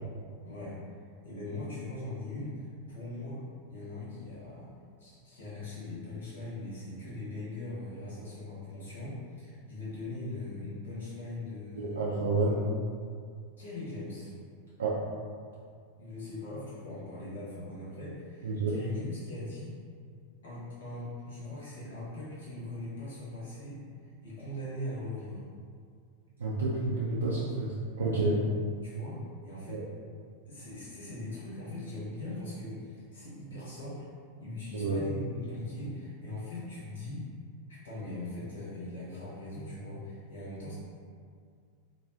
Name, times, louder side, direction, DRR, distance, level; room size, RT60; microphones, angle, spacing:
voice 1, 0.4-1.0 1.2-3.4 3.7-4.7 5.0-12.1 13.6-14.3 16.0-19.8 20.4-25.5 28.8-29.8 30.4-34.1 34.4-37.3 37.7-40.7, left 1 dB, 65° left, -8 dB, 1.0 m, -40 dB
voice 2, 11.8-12.6 14.8-15.0 18.4-18.8 26.4-28.4 29.7-29.8 34.7-35.0, right 3 dB, 70° right, -7 dB, 0.3 m, -29 dB
2.4 x 2.4 x 2.4 m, 2.2 s
figure-of-eight pair, 90°, 0 cm